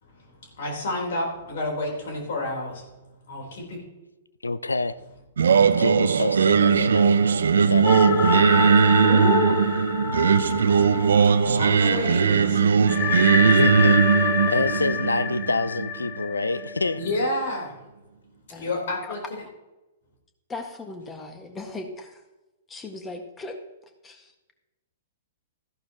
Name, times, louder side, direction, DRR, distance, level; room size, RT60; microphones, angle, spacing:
voice 1, 0.0-2.9 3.3-3.8 8.7-12.7 13.5-13.6 16.9-17.8 18.5-19.2, left 2 dB, 60° left, 4.0 m, -30 dB
voice 2, 4.4-5.0 5.8-8.3 13.6-14.0 14.5-17.0, left 3 dB, 85° left, 0.5 m, -27 dB
Singing, 5.4-16.5, right 6 dB, 70° right, 0.6 m, -19 dB
sound 1, 7.8-11.9 12.1-12.2 12.9-17.5, left 8 dB, 30° left, 0.8 m, -28 dB
voice 3, 18.5-19.2 20.5-22.2 22.7-23.6 24.0-24.3, left 2 dB, 15° left, 1.7 m, -38 dB
14.5 x 11.5 x 3.0 m
figure-of-eight pair, 110°, 0 cm